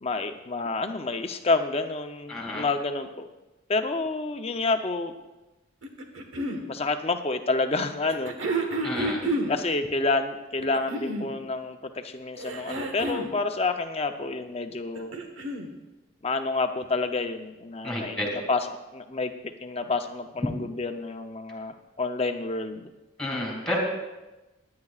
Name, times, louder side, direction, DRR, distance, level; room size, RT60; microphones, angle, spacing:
voice 1, 0.0-3.3 3.7-5.1 6.7-8.3 9.5-15.1 16.2-19.3 19.6-22.9, left 3 dB, 30° left, 7 dB, 0.6 m, -29 dB
voice 2, 2.3-2.6 8.8-9.2 17.8-18.3 23.2-23.8, left 1 dB, 5° left, -1 dB, 2.6 m, -30 dB
sound 1, 5.8-6.6 8.1-9.6 10.6-11.3 12.4-13.3 14.8-15.7 16.8-16.9, right 1 dB, 80° right, 1.4 m, -30 dB
21.5 x 9.5 x 2.4 m, 1.1 s
head